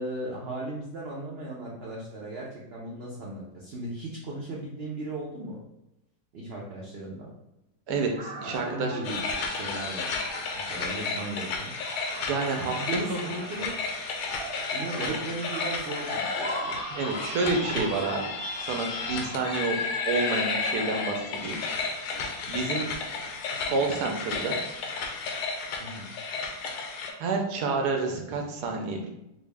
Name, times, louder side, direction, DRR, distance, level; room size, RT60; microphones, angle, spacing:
voice 1, 0.0-5.6 6.3-7.3 8.4-10.2 10.5-11.7 12.6-13.8 14.7-16.8 17.6-18.0 22.6-22.7 25.8-26.1, right 2 dB, 60° right, -4 dB, 0.6 m, -37 dB
voice 2, 7.9-9.1 12.2-12.7 13.1-13.3 15.0-15.1 16.9-18.3 18.6-19.8 20.1-21.6 22.5-22.9 23.7-24.6 27.2-29.1, right 3 dB, 80° right, 2 dB, 1.2 m, -29 dB
sound 1, 8.2-20.4, right 2 dB, 20° right, 0.9 m, -41 dB
sound 2, 9.0-27.1, left 4 dB, 80° left, 1.1 m, -33 dB
4.1 x 2.0 x 3.3 m, 0.88 s
omnidirectional pair, 1.7 m